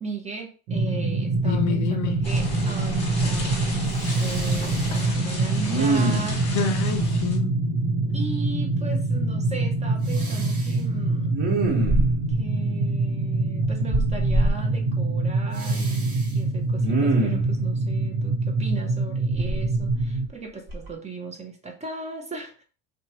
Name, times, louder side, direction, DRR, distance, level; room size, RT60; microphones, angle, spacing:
voice 1, 0.0-3.8 4.2-6.4 8.1-11.4 12.4-22.6, right 3 dB, 20° right, 0.7 m, -37 dB
sound 1, 0.7-20.3, right 2 dB, 70° right, 1.0 m, -25 dB
voice 2, 1.4-2.2 6.4-7.5, left 7 dB, 55° left, 0.6 m, -28 dB
Respiratory sounds, 1.5-1.6 2.1-2.6 2.9-3.6 4.0-5.0 5.7-6.5 10.1-10.7 11.3-12.4 13.9-14.5 15.6-16.3 16.8-17.5 19.4-20.3 20.7-20.9, right 2 dB, 40° right, 1.4 m, -26 dB
sound 2, 2.2-7.4, left 2 dB, 15° left, 1.3 m, -35 dB
2.8 x 2.3 x 2.8 m
supercardioid pair, 95°, 36 cm